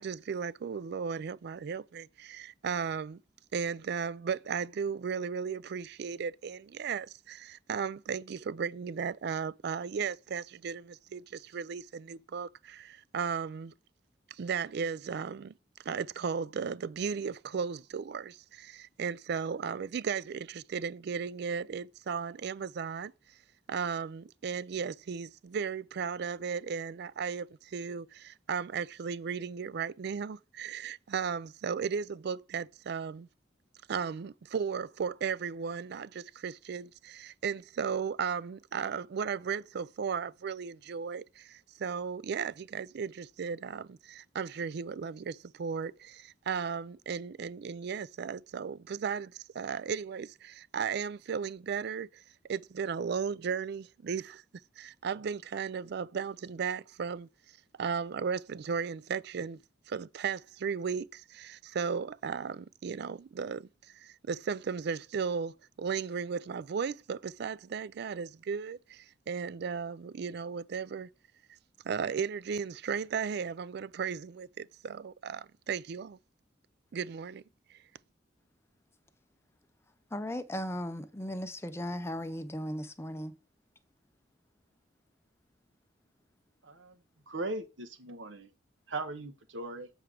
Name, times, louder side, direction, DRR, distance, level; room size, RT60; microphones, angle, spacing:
voice 1, 0.0-3.2 3.5-13.7 14.3-15.5 15.9-23.1 23.7-33.3 33.9-52.2 52.5-54.4 54.8-57.3 57.8-59.6 59.9-63.7 63.9-71.1 71.8-76.2 76.9-77.4 77.7-77.8, right 6 dB, 60° right, 0.4 m, -35 dB
voice 2, 80.1-83.3, equal, 15° left, 0.7 m, -37 dB
voice 3, 86.6-87.0 87.3-88.5 88.9-89.9, right 2 dB, 85° right, 1.1 m, -38 dB
7.7 x 4.6 x 5.0 m
head